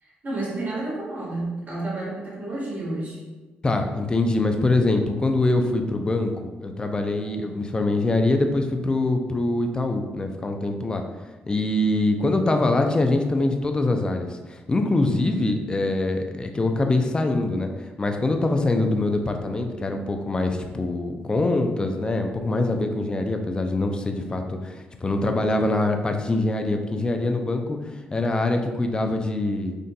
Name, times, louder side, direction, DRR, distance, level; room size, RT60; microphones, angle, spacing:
voice 1, 0.0-3.2, right 2 dB, 45° right, -5 dB, 1.4 m, -30 dB
voice 2, 3.6-6.3 6.6-11.0 11.5-17.7 18.0-29.7, left 2 dB, 25° left, 4 dB, 0.4 m, -24 dB
3.8 x 2.5 x 2.2 m, 1.2 s
cardioid pair, 70°, 4 cm